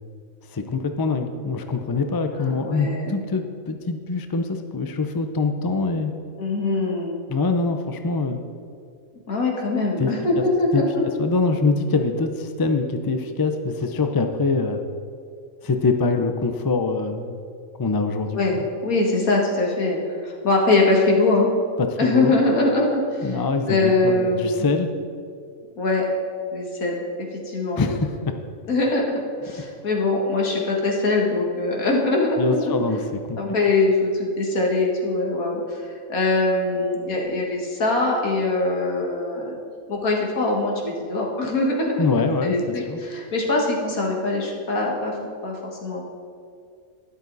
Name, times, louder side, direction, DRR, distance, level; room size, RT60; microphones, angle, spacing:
voice 1, 0.5-6.1 7.3-8.4 10.0-10.1 10.7-10.8 11.2-14.8 15.6-17.4 17.8-18.4 21.8-22.3 23.2-24.9 27.8-28.3 32.4-33.4 42.0-42.5 42.8-43.0, left 3 dB, 30° left, 6 dB, 0.4 m, -24 dB
voice 2, 2.4-3.1 6.4-7.2 9.3-11.0 18.3-18.6 18.8-20.0 20.2-21.5 22.0-23.4 23.7-24.6 25.8-26.0 26.5-27.0 27.5-27.8 28.7-32.8 33.4-39.6 39.9-45.1 45.4-46.0, left 2 dB, 80° left, -1 dB, 2.2 m, -22 dB
12.5 x 11.0 x 4.1 m, 2.3 s
omnidirectional pair, 1.5 m